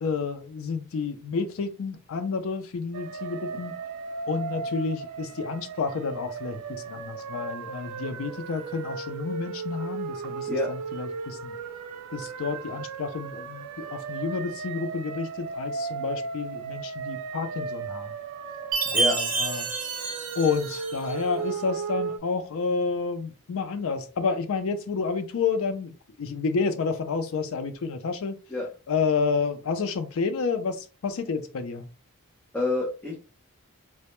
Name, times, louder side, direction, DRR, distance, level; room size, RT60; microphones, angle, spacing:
voice 1, 0.0-3.8 4.3-11.6 12.1-18.1 18.9-19.7 20.4-28.4 28.9-31.9, left 5 dB, 65° left, 0.4 m, -30 dB
sound 1, 2.9-22.2, right 5 dB, 90° right, 0.3 m, -36 dB
Chime, 18.7-21.2, right 3 dB, 35° right, 0.8 m, -28 dB
voice 2, 32.5-33.1, left 1 dB, 5° left, 0.5 m, -27 dB
2.1 x 2.1 x 2.9 m
head